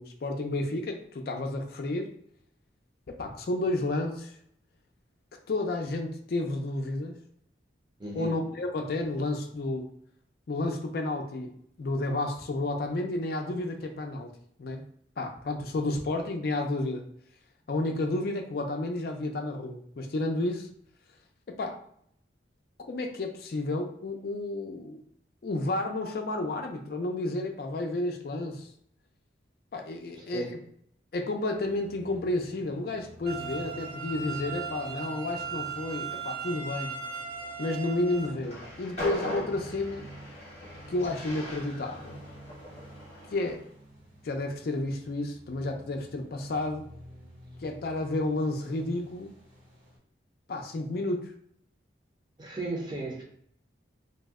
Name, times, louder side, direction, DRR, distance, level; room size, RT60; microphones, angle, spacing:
voice 1, 0.0-2.1 3.1-4.3 5.5-7.2 8.2-9.9 10.5-11.5 11.8-14.3 14.6-14.8 15.2-17.0 17.7-20.7 21.5-21.8 22.9-25.0 25.4-28.7 29.7-30.5 31.1-37.0 37.6-40.1 40.9-42.2 43.3-43.6 44.2-46.9 47.6-49.3 50.5-51.3, left 2 dB, 55° left, 4 dB, 0.4 m, -31 dB
voice 2, 8.0-8.4 30.1-30.6 52.4-53.2, right 2 dB, 25° right, -1 dB, 0.6 m, -35 dB
sound 1, 31.5-50.0, equal, 85° right, 1.4 m, -51 dB
sound 2, 33.3-38.3, right 6 dB, 55° right, 0.8 m, -37 dB
Train, 38.3-43.6, equal, 35° left, 0.8 m, -40 dB
2.6 x 2.1 x 3.5 m, 0.67 s
head